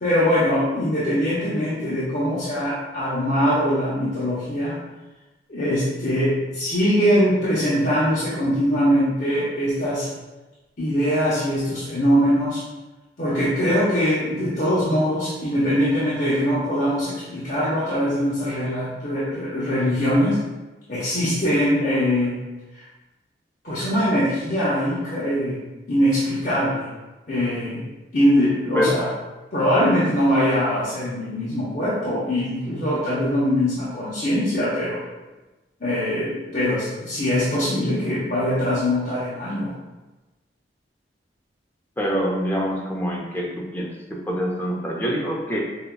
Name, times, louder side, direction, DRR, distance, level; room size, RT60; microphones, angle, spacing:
voice 1, 0.0-4.8 5.5-10.1 10.8-12.6 13.2-20.4 20.9-22.4 23.6-25.6 25.9-26.9 27.3-27.9 28.1-29.1 29.5-35.0 35.8-39.7, equal, 50° left, -10 dB, 0.8 m, -22 dB
voice 2, 42.0-45.6, equal, 10° left, -2 dB, 0.5 m, -25 dB
5.3 x 2.2 x 2.2 m, 1.1 s
head